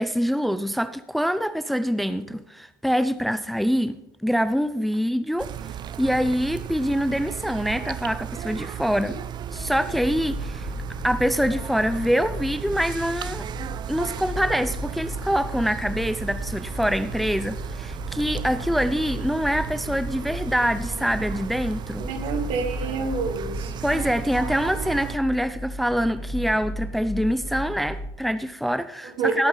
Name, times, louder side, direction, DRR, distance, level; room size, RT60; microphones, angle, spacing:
voice 1, 0.0-5.5 6.0-9.2 9.5-10.7 11.0-13.4 13.9-22.1 23.8-29.5, equal, ahead, 12 dB, 0.6 m, -25 dB
sound 1, 5.4-25.2, right 9 dB, 40° right, 0.7 m, -35 dB
sound 2, 9.5-28.1, equal, 25° left, 1.7 m, -35 dB
voice 2, 22.0-23.7 29.2-29.5, right 4 dB, 55° right, 6 dB, 2.3 m, -28 dB
17.5 x 8.7 x 4.0 m, 0.85 s
figure-of-eight pair, 65°, 11 cm